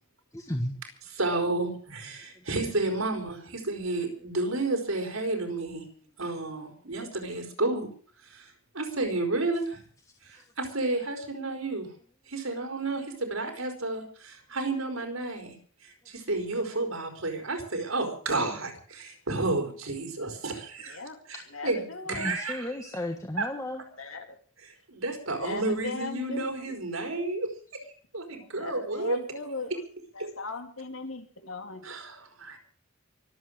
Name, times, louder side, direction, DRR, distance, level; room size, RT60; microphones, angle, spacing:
voice 1, 0.3-0.7 22.1-23.8 28.4-28.5, left 1 dB, 15° left, 4 dB, 1.3 m, -33 dB
voice 2, 1.1-5.8 6.2-7.9 8.2-9.8 10.2-11.9 12.3-15.6 15.8-21.0 21.3-22.7 23.4-23.5 24.9-27.8 28.1-29.2 29.7-29.8 30.2-30.3 31.8-32.6, right 2 dB, 90° right, 5 dB, 4.5 m, -31 dB
voice 3, 20.9-21.2 21.5-22.3 24.0-24.4 25.4-26.6 28.6-29.7 30.1-31.9, left 3 dB, 80° left, 5 dB, 3.3 m, -38 dB
24.5 x 8.4 x 6.6 m, 0.43 s
head